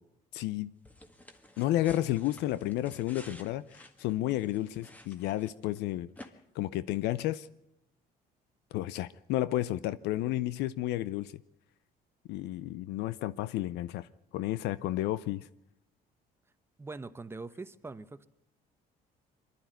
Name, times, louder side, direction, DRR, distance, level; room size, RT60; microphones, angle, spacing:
voice 1, 0.3-0.7 1.6-6.1 6.6-7.5 8.7-11.3 12.3-14.1 14.3-15.5, left 14 dB, 85° left, 0.6 m, -31 dB
sound 1, 0.9-5.8 6.2-6.3, left 1 dB, 10° left, 1.7 m, -52 dB
voice 2, 16.8-18.3, right 3 dB, 15° right, 0.9 m, -42 dB
24.0 x 12.0 x 9.3 m
cardioid pair, 110°, 17 cm